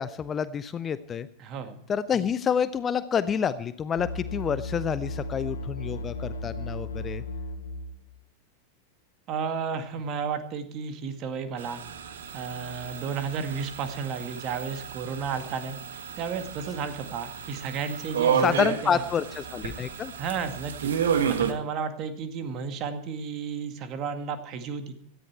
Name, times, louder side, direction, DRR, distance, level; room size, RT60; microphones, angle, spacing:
voice 1, 0.0-1.3 1.9-7.2 18.4-20.1, left 7 dB, 25° left, 15 dB, 0.6 m, -28 dB
voice 2, 1.4-1.8 9.3-11.8 12.3-15.8 16.2-19.0 20.2-20.9 21.3-25.0, right 6 dB, 35° right, 8 dB, 2.0 m, -33 dB
sound 1, 4.0-8.1, left 2 dB, 70° left, 2.3 m, -35 dB
sound 2, 11.6-21.5, right 7 dB, 60° right, 1.6 m, -31 dB
17.5 x 13.0 x 4.6 m, 0.65 s
figure-of-eight pair, 90°, 0 cm